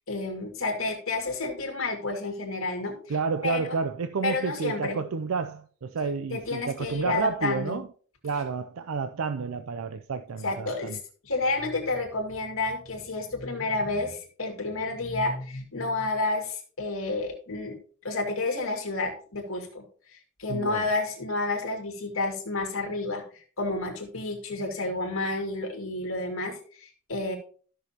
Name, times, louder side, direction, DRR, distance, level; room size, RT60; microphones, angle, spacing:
voice 1, 0.0-3.1 3.4-3.8 4.2-5.0 6.3-7.8 10.4-17.8 18.0-19.8 20.4-23.2 23.6-27.4, left 2 dB, 70° left, 2.2 m, -30 dB
voice 2, 3.1-7.9 8.2-11.0 20.5-20.9, right 5 dB, 80° right, 0.5 m, -30 dB
13.5 x 6.2 x 2.9 m
head